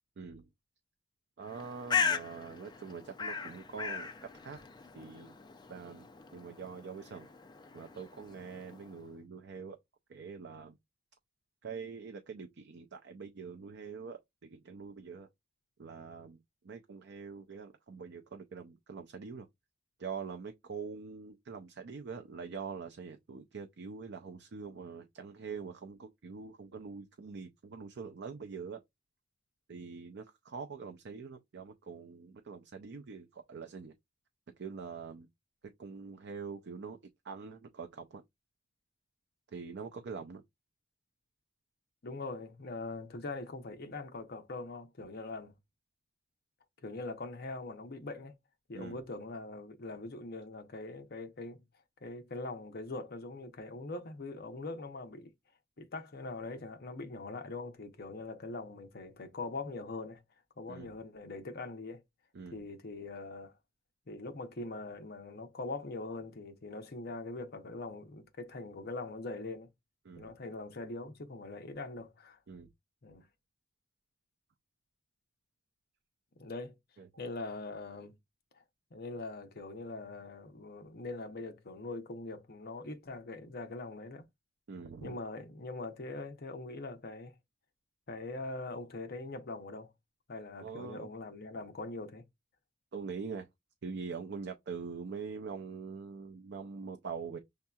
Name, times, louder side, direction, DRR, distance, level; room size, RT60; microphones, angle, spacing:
voice 1, 0.2-0.5 1.4-4.6 4.9-5.4 5.7-7.3 7.7-9.8 10.1-10.8 11.6-15.3 15.8-16.4 16.6-19.5 20.0-28.8 29.7-33.9 34.6-35.3 35.8-37.0 37.2-38.2 39.5-40.4 48.7-49.0 60.7-60.9 62.3-62.6 70.0-70.4 72.5-72.7 77.0-77.1 84.7-85.2 90.6-91.1 92.9-93.5 93.8-97.4, right 5 dB, 55° right, 0.5 m, -44 dB
Bird, 1.4-9.0, left 6 dB, 20° left, 0.4 m, -38 dB
voice 2, 42.0-45.5 46.8-48.3 48.7-51.6 52.0-55.3 55.8-60.2 60.6-62.0 62.5-63.5 64.1-69.7 70.2-72.4 73.0-73.3 76.4-76.7 77.2-78.1 78.6-78.7 78.9-84.3 85.0-87.3 88.1-89.9 90.3-92.2, left 2 dB, 50° left, 0.7 m, -42 dB
6.5 x 2.8 x 2.3 m
head